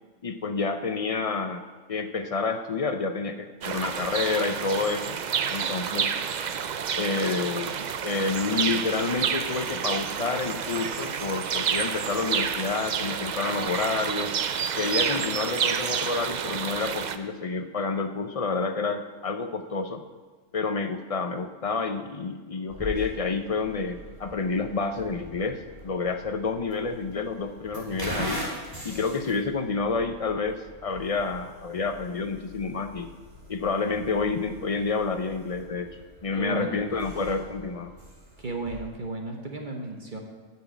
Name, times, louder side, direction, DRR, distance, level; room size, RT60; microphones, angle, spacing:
voice 1, 0.2-1.6 1.9-5.2 5.5-6.2 6.9-14.3 14.8-20.0 20.5-28.4 28.8-33.1 33.5-37.9, left 4 dB, 55° left, 8 dB, 0.4 m, -29 dB
sound 1, 3.6-17.2, right 7 dB, 65° right, 0.4 m, -29 dB
sound 2, 22.7-38.9, equal, 15° right, 2.1 m, -42 dB
voice 2, 36.3-36.8 38.4-40.2, right 2 dB, 40° right, 2 dB, 1.3 m, -34 dB
9.4 x 6.2 x 8.1 m, 1.4 s
omnidirectional pair, 1.4 m